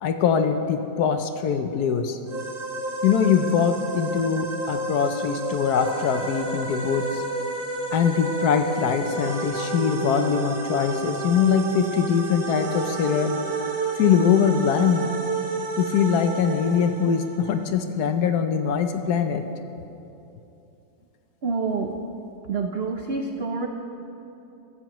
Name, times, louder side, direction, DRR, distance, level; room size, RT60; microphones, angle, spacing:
voice 1, 0.0-2.2 3.0-7.2 7.9-13.4 14.0-15.1 15.8-19.4, left 7 dB, 65° left, 7 dB, 1.1 m, -22 dB
sound 1, 2.3-17.7, right 3 dB, 40° right, 1.0 m, -31 dB
voice 2, 21.4-22.0 22.5-23.7, right 4 dB, 80° right, 3 dB, 0.5 m, -27 dB
15.0 x 14.0 x 3.0 m, 2.8 s
omnidirectional pair, 2.0 m